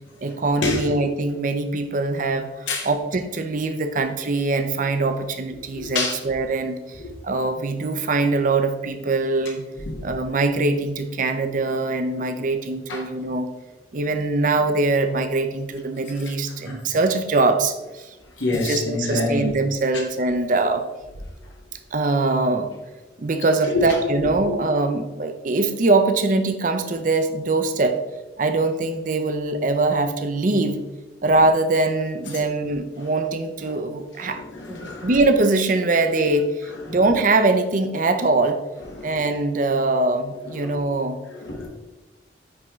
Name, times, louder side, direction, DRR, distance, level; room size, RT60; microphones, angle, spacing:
voice 1, 0.2-9.6 10.0-13.5 13.9-18.1 18.5-20.8 21.9-22.7 23.2-28.0 28.4-30.8 31.2-34.4 34.7-36.5 36.9-38.6 39.0-41.2, right 2 dB, 45° right, 8 dB, 0.5 m, -22 dB
voice 2, 5.7-6.1 7.0-7.1 9.9-10.0 12.9-13.0 16.6-16.8 18.4-19.5 23.7-23.8 24.2-24.3 32.3-32.4 33.0-33.1 33.7-33.8 34.2-35.1 36.7-37.0 38.9-39.2 40.4-40.7 41.3-41.7, left 2 dB, 85° left, -2 dB, 1.4 m, -27 dB
9.4 x 3.7 x 3.1 m, 1.1 s
head